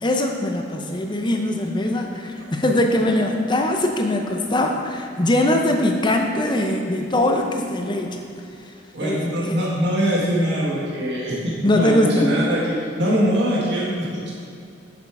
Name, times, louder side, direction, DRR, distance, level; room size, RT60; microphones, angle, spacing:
voice 1, 0.0-8.2 9.0-9.6 11.6-12.4, left 1 dB, 25° left, 3 dB, 0.7 m, -21 dB
voice 2, 8.9-12.6 13.0-14.3, equal, 60° right, -6 dB, 1.7 m, -22 dB
7.2 x 6.6 x 4.7 m, 2.5 s
head